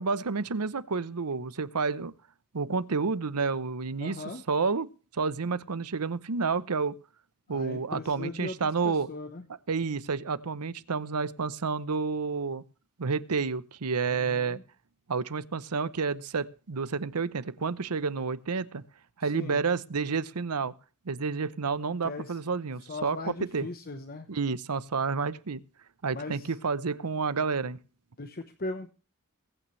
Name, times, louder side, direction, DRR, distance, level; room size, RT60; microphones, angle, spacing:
voice 1, 0.0-2.1 2.5-4.9 5.1-6.9 7.5-9.1 9.7-12.6 13.0-14.6 15.1-18.8 19.2-20.7 21.1-23.7 24.3-25.6 26.0-27.8, right 5 dB, 85° right, 17 dB, 0.8 m, -30 dB
voice 2, 4.0-4.4 7.5-9.4 14.1-14.6 19.2-19.6 22.0-22.4 22.9-24.3 26.1-26.5 28.2-28.9, left 2 dB, 40° left, 8 dB, 1.0 m, -39 dB
22.5 x 8.8 x 3.2 m, 0.35 s
head